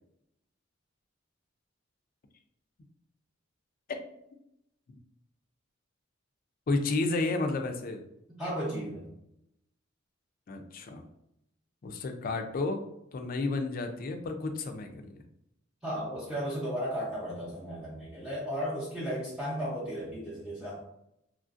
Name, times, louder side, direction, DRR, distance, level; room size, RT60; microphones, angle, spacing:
voice 1, 6.7-8.0 10.5-11.0 11.8-12.8 13.1-15.2, left 3 dB, 45° left, 6 dB, 0.4 m, -31 dB
voice 2, 8.4-9.1 15.8-20.8, equal, 5° right, -11 dB, 0.7 m, -35 dB
3.0 x 2.4 x 2.4 m, 0.80 s
head